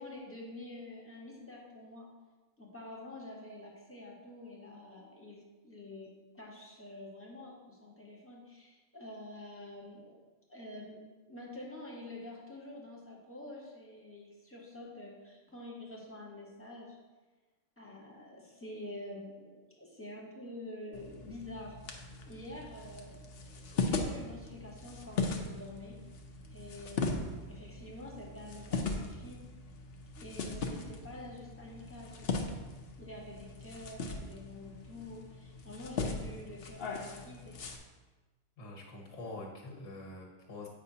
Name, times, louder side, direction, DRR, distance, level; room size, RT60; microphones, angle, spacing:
voice 1, 0.0-2.1 2.6-10.2 10.5-17.0 17.8-21.8 22.3-25.9 26.5-29.4 30.2-32.5 33.0-37.6, left 1 dB, 10° left, -4 dB, 1.1 m, -47 dB
sound 1, 20.9-37.8, left 3 dB, 60° left, 0.8 m, -39 dB
voice 2, 38.6-40.7, left 2 dB, 80° left, 0 dB, 1.5 m, -45 dB
8.1 x 5.3 x 2.8 m, 1.2 s
omnidirectional pair, 1.3 m